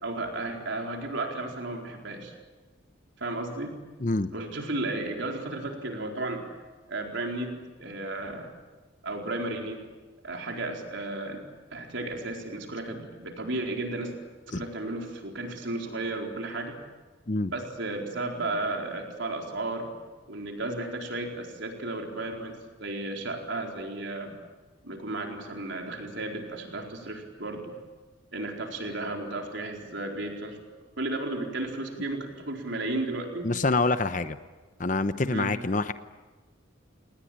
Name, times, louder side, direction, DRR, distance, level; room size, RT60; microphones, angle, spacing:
voice 1, 0.0-2.3 3.2-3.7 4.3-6.5 6.9-8.5 9.0-9.8 10.2-11.4 11.7-14.1 14.5-16.8 17.5-19.9 20.3-24.3 24.8-27.7 28.3-30.6 31.0-33.5 35.3-35.5, right 2 dB, 65° right, 2 dB, 4.4 m, -34 dB
voice 2, 33.4-34.4 34.8-35.9, left 3 dB, 40° left, 11 dB, 0.8 m, -26 dB
29.5 x 19.5 x 8.9 m, 1.3 s
head